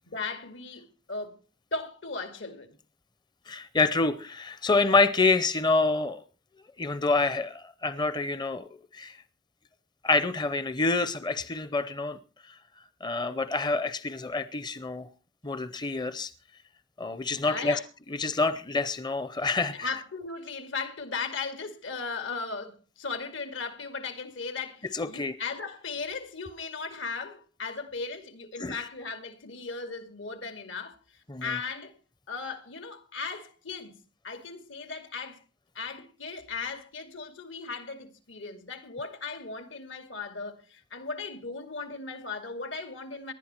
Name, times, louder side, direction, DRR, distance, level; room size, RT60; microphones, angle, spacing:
voice 1, 0.1-1.4 1.7-2.7 17.4-17.8 19.7-31.0 31.4-31.9 32.3-35.4 35.7-43.3, left 4 dB, 80° left, 2.5 m, -37 dB
voice 2, 3.5-6.2 6.8-9.2 10.0-12.2 12.5-12.6 13.0-15.1 15.4-16.3 17.0-17.8 18.1-19.9 24.9-25.3 28.6-28.8 31.3-31.6, left 3 dB, 25° left, 0.6 m, -27 dB
19.0 x 11.0 x 4.4 m
head